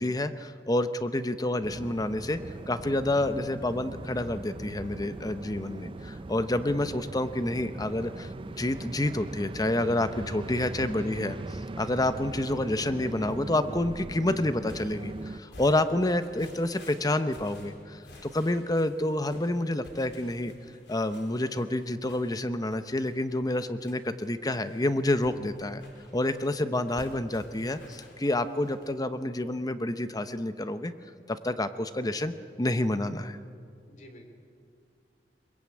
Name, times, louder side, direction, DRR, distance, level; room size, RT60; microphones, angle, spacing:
voice 1, 0.0-2.4 2.7-11.3 11.8-20.5 20.9-25.8 26.1-30.9 31.3-33.4, left 1 dB, 20° left, 11 dB, 0.9 m, -28 dB
sound 1, 1.6-15.4, right 2 dB, 30° right, 0.5 m, -40 dB
sound 2, 2.5-14.7, equal, 70° right, 5.3 m, -53 dB
sound 3, 14.7-29.0, left 1 dB, 90° left, 4.7 m, -52 dB
voice 2, 33.9-34.3, left 1 dB, 45° left, 5 dB, 3.3 m, -50 dB
22.0 x 22.0 x 8.8 m, 2.4 s
head